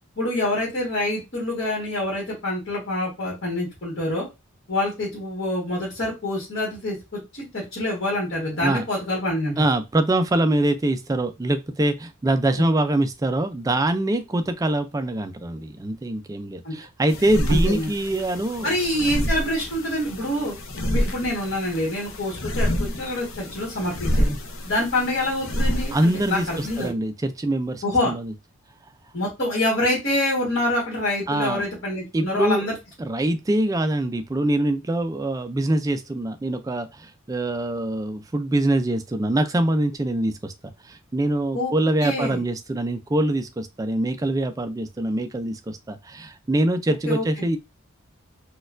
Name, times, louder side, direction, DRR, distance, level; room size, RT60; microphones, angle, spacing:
voice 1, 0.2-4.3 4.7-9.6 12.6-12.7 16.6-16.7 17.5-17.9 18.6-20.5 20.9-24.3 24.6-26.9 27.8-28.1 29.1-32.7 41.5-41.7 42.0-42.4 47.0-47.2, left 1 dB, 55° left, 1.4 m, -26 dB
voice 2, 9.6-18.7 25.9-28.3 31.3-31.7 32.1-32.6 33.0-47.6, right 1 dB, 15° right, 0.3 m, -24 dB
sound 1, 17.1-26.9, equal, 75° left, 0.6 m, -28 dB
4.1 x 2.3 x 2.4 m
head